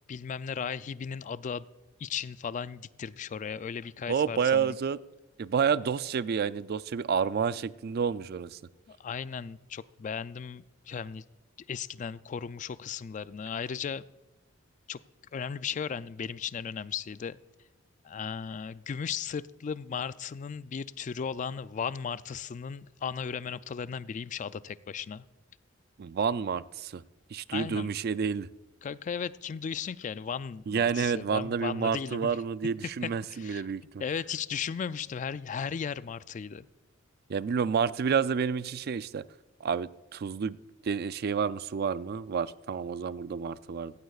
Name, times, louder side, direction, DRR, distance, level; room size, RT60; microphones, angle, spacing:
voice 1, 0.1-1.7 2.0-4.8 8.9-11.2 11.7-14.1 14.9-15.0 15.3-17.4 18.0-25.2 27.5-27.9 28.8-32.3 33.0-33.7 34.0-36.7, left 6 dB, 40° left, 0.3 m, -36 dB
voice 2, 4.1-5.0 5.4-8.6 26.0-27.0 27.3-28.5 30.7-33.8 37.3-39.2 39.6-40.6 40.8-43.9, right 6 dB, 50° right, 0.4 m, -29 dB
16.0 x 15.5 x 2.4 m
head